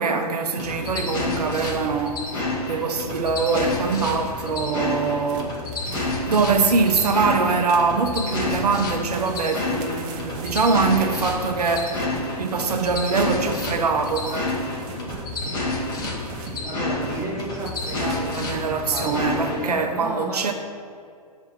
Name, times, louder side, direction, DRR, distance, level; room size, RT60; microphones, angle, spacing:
voice 1, 0.0-2.2 2.7-14.5 18.4-20.5, right 4 dB, 75° right, 0.6 m, -23 dB
sound 1, 0.6-19.7, left 2 dB, 20° left, 1.0 m, -29 dB
sound 2, 5.3-16.7 17.0-19.4 19.7-19.8, right 4 dB, 30° right, 0.6 m, -41 dB
voice 2, 16.4-20.5, right 2 dB, 15° right, 1.1 m, -32 dB
6.7 x 3.0 x 5.7 m
hypercardioid pair, 120°, 20 cm